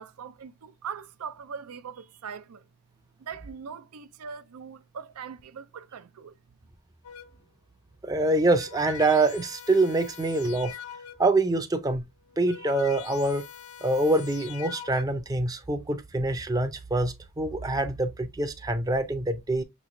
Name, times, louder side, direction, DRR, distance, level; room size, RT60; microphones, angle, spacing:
voice 1, 0.0-2.6 3.2-6.4, right 6 dB, 90° right, 0.5 m, -41 dB
sound 1, 7.0-7.5 8.3-11.4 12.2-15.4, left 8 dB, 80° left, 0.6 m, -44 dB
voice 2, 8.0-10.8 11.2-12.0 12.4-13.4 13.8-19.6, right 2 dB, 15° right, 0.4 m, -25 dB
6.3 x 3.0 x 2.6 m
head